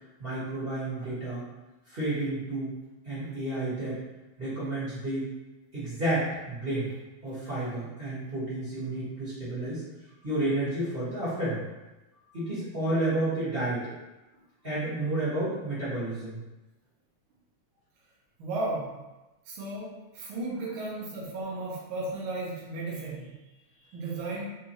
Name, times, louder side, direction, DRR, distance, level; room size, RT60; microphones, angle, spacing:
voice 1, 0.2-1.4 1.9-2.7 3.0-4.0 4.4-5.3 5.7-6.9 7.2-9.8 10.2-11.7 12.3-13.9 14.6-16.4, right 1 dB, 30° right, -11 dB, 1.0 m, -31 dB
voice 2, 18.4-18.9 19.4-24.5, right 2 dB, 60° right, -5 dB, 1.4 m, -35 dB
5.0 x 3.3 x 3.1 m, 1.1 s
omnidirectional pair, 3.6 m